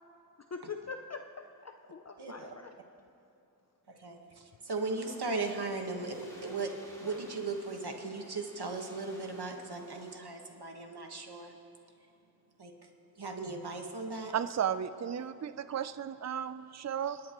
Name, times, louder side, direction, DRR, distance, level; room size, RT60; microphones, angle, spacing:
voice 1, 0.5-2.7, left 5 dB, 45° left, 6 dB, 0.5 m, -43 dB
voice 2, 2.2-2.5 4.0-6.7 7.0-11.5 12.6-12.7 13.2-14.3, right 3 dB, 80° right, 3 dB, 1.5 m, -37 dB
sound 1, 4.7-10.2, equal, 10° left, 3.6 m, -55 dB
voice 3, 14.3-17.2, right 8 dB, 45° right, 12 dB, 0.4 m, -34 dB
29.5 x 11.0 x 3.0 m, 2.7 s
wide cardioid pair, 55°, 39 cm